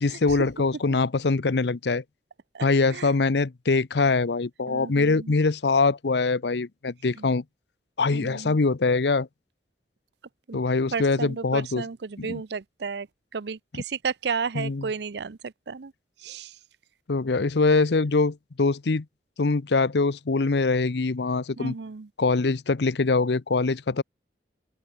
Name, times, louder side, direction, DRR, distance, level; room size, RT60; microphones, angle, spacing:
voice 1, 0.0-2.0 2.6-7.4 8.0-9.3 10.5-11.9 12.2-12.4 14.5-14.9 17.1-19.1 19.4-21.7 22.2-24.0, left 3 dB, 75° left, 0.7 m, -23 dB
voice 2, 2.5-3.1 4.6-5.4 7.2-7.3 8.1-8.6 10.5-10.6 10.9-13.1 13.3-15.9 16.2-16.6 21.6-22.1, right 5 dB, 75° right, 0.6 m, -33 dB
open air
head